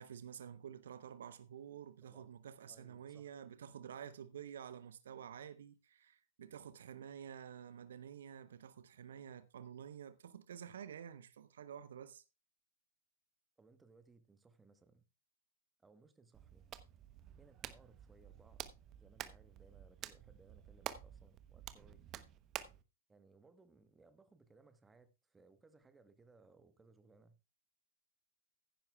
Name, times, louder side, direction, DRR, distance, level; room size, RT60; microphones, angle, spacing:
voice 1, 0.0-12.2, right 8 dB, 65° right, 0.8 m, -50 dB
voice 2, 2.7-3.3 13.6-15.0 15.8-16.7 17.4-18.6 19.0-22.3 23.1-27.3, right 3 dB, 10° right, 1.2 m, -65 dB
Hands, 16.3-22.8, right 11 dB, 30° right, 0.9 m, -50 dB
15.5 x 10.5 x 2.3 m
figure-of-eight pair, 105°, 0 cm